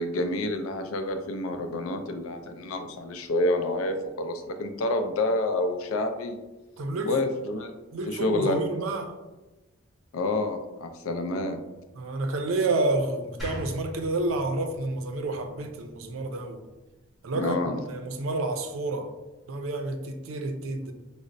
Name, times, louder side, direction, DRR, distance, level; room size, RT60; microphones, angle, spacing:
voice 1, 0.0-6.4 7.0-7.7 8.1-8.6 10.1-11.6 17.3-17.8, left 2 dB, 85° left, 7 dB, 0.4 m, -28 dB
voice 2, 6.8-7.1 7.9-9.1 12.0-16.6 17.2-17.6 17.9-19.1 19.5-20.9, right 2 dB, 75° right, 6 dB, 0.4 m, -29 dB
sound 1, 13.4-16.6, equal, ahead, 1.0 m, -41 dB
5.0 x 2.0 x 2.5 m, 1.1 s
head